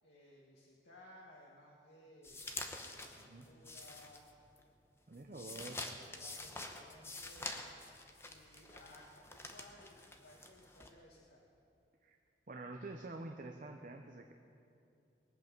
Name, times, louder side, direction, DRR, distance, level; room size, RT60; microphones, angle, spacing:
voice 1, 0.0-4.3 5.3-7.6 8.2-11.4, left 1 dB, 75° left, -3 dB, 1.6 m, -60 dB
sound 1, 2.2-4.6 5.0-10.9, left 2 dB, 15° left, 0.9 m, -47 dB
voice 2, 5.1-5.9 12.0-12.2 12.5-14.3, right 2 dB, 50° right, 3 dB, 0.7 m, -47 dB
21.0 x 8.2 x 6.1 m, 2.7 s
head